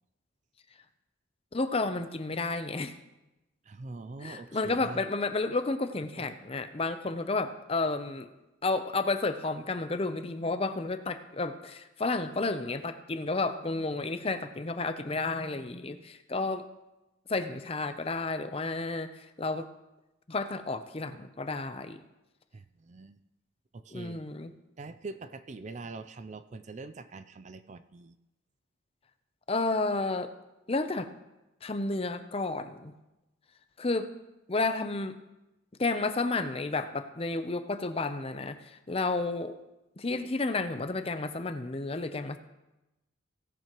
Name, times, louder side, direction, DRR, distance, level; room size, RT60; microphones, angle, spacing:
voice 1, 1.5-2.9 4.2-8.3 8.6-16.7 17.3-19.7 20.3-22.0 23.9-24.5 29.5-30.3 30.7-31.1 31.6-32.9 33.8-34.1 34.5-35.2 35.8-39.6 40.0-42.4, left 3 dB, 30° left, 9 dB, 0.6 m, -31 dB
voice 2, 3.6-5.0 6.1-6.3 22.5-23.2 23.7-24.3 24.8-28.2, right 3 dB, 35° right, 12 dB, 0.4 m, -43 dB
17.0 x 10.5 x 3.0 m, 0.98 s
head